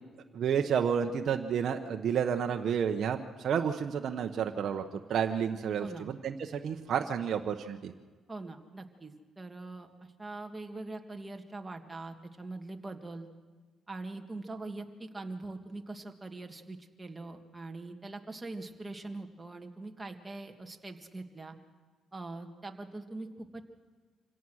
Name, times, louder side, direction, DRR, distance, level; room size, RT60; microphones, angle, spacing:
voice 1, 0.3-7.9, right 7 dB, 60° right, 4 dB, 0.9 m, -31 dB
voice 2, 8.3-13.3 13.9-21.6 22.1-23.6, right 2 dB, 15° right, 3 dB, 1.9 m, -42 dB
26.0 x 17.0 x 6.4 m, 1.4 s
cardioid pair, 90°, 0 cm